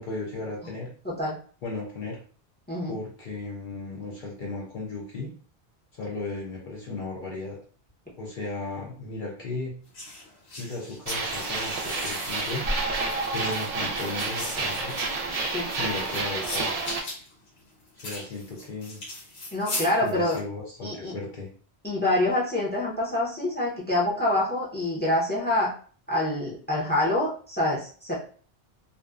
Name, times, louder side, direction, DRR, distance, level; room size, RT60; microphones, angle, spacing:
voice 1, 0.0-0.9 1.6-2.2 2.9-5.3 5.9-7.6 8.2-9.7 10.5-12.7 13.3-14.9 15.8-16.7 18.0-19.0 20.0-21.5, left 3 dB, 55° left, -3 dB, 0.7 m, -35 dB
voice 2, 1.0-1.3 2.7-3.0 15.5-15.7 19.5-20.4 20.8-21.1 21.8-25.7 26.1-28.1, left 1 dB, 10° left, -5 dB, 0.6 m, -26 dB
sound 1, 9.9-20.4, left 2 dB, 75° left, 1.3 m, -38 dB
sound 2, 11.1-17.0, right 3 dB, 55° right, 0.4 m, -29 dB
2.6 x 2.1 x 2.3 m, 0.43 s
omnidirectional pair, 1.1 m